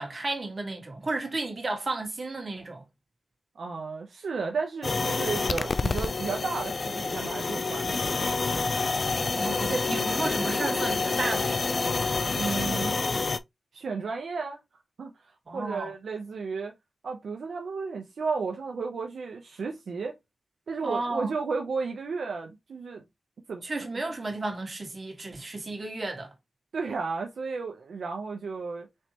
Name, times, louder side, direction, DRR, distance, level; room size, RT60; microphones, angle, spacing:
voice 1, 0.0-2.8 9.4-11.8 15.5-15.9 20.8-21.3 23.6-26.3, right 2 dB, 45° right, 1.7 m, -33 dB
voice 2, 3.6-8.6 12.3-13.0 13.7-14.6 15.0-16.7 17.0-20.1 20.7-23.0 23.5-23.6 23.9-24.1 26.7-28.9, right 4 dB, 85° right, 0.7 m, -33 dB
sound 1, 4.8-13.4, left 3 dB, 55° left, 0.4 m, -28 dB
4.3 x 3.3 x 2.8 m
cardioid pair, 50°, 0 cm